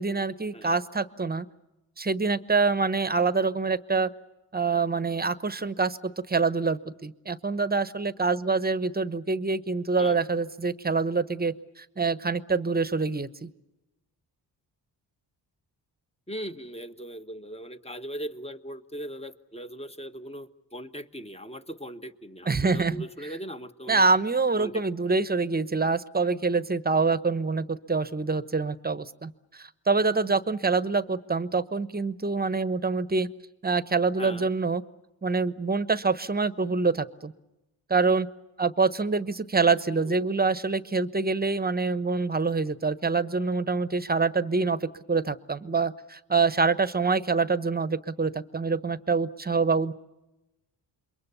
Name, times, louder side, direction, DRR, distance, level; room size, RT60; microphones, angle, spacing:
voice 1, 0.0-1.5 2.0-4.1 4.5-6.0 6.3-13.5 22.4-23.4 23.9-33.3 33.6-34.8 35.2-37.3 37.9-38.3 38.6-49.9, right 4 dB, 20° right, 15 dB, 1.1 m, -26 dB
voice 2, 16.3-24.0 24.6-25.2 34.2-34.5 40.0-40.3, equal, 15° left, 9 dB, 1.4 m, -39 dB
27.5 x 22.5 x 7.0 m, 0.98 s
cardioid pair, 70°, 41 cm